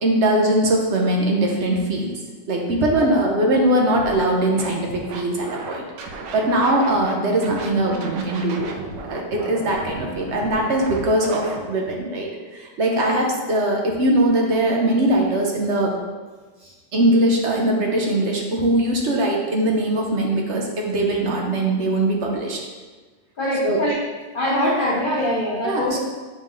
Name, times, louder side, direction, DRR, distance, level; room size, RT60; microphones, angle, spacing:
voice 1, 0.0-2.2 2.5-8.7 9.1-15.9 16.9-22.6 23.6-23.8 25.6-26.0, right 1 dB, 55° right, 0 dB, 0.8 m, -21 dB
Scratching (performance technique), 3.9-4.2 4.6-7.1 7.4-11.6, right 3 dB, 80° right, 1.3 m, -35 dB
voice 2, 23.4-24.0 24.3-26.0, left 1 dB, 60° left, -4 dB, 0.5 m, -23 dB
7.2 x 4.0 x 3.7 m, 1.3 s
omnidirectional pair, 2.0 m